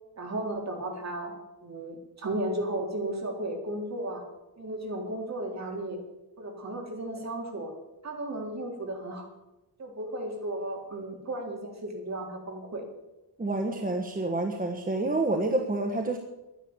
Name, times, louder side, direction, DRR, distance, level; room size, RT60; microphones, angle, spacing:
voice 1, 0.2-1.3 1.6-4.3 4.6-6.0 6.4-7.7 8.0-9.3 9.8-12.9, right 1 dB, 45° right, 1 dB, 4.0 m, -34 dB
voice 2, 13.4-16.2, right 2 dB, 20° right, 4 dB, 1.4 m, -28 dB
11.5 x 10.5 x 8.8 m, 0.99 s
cardioid pair, 110°, 38 cm